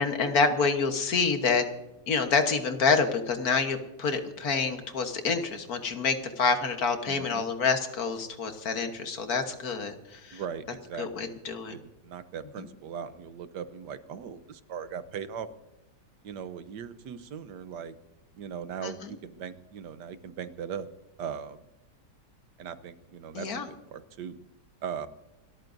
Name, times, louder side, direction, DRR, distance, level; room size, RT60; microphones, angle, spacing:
voice 1, 0.0-1.7 2.1-10.4 11.0-11.7 12.6-12.7 18.8-19.1 23.3-23.7, left 5 dB, 60° left, 7 dB, 1.7 m, -27 dB
voice 2, 7.0-7.5 10.3-11.3 11.7-15.5 16.2-17.9 18.4-20.9 21.2-21.6 22.6-24.4 24.8-25.1, right 7 dB, 75° right, 12 dB, 1.4 m, -39 dB
28.0 x 13.5 x 2.6 m, 0.99 s
omnidirectional pair, 1.8 m